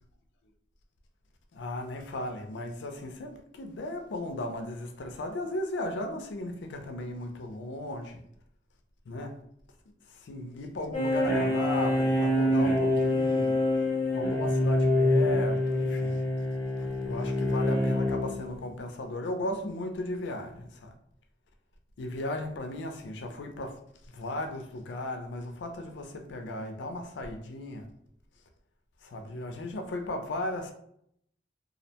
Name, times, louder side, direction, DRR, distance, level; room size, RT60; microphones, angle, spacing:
voice 1, 1.5-8.2 9.1-9.4 10.2-13.6 14.1-16.2 17.0-20.9 22.0-23.8 24.1-27.9 29.0-30.7, left 1 dB, 75° left, 0.4 m, -36 dB
sound 1, 10.9-18.5, left 1 dB, 10° left, 0.8 m, -26 dB
2.5 x 2.1 x 2.7 m
head